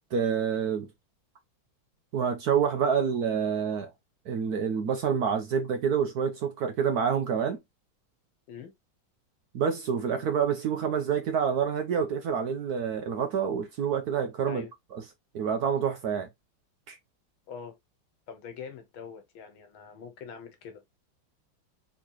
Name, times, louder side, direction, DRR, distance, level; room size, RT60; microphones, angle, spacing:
voice 1, 0.1-0.9 2.1-3.9 4.3-7.6 9.5-15.0 15.3-16.3 16.9-17.0, right 7 dB, 65° right, 1.0 m, -27 dB
voice 2, 18.3-20.8, left 6 dB, 80° left, 2.0 m, -43 dB
4.3 x 3.7 x 3.0 m
omnidirectional pair, 2.2 m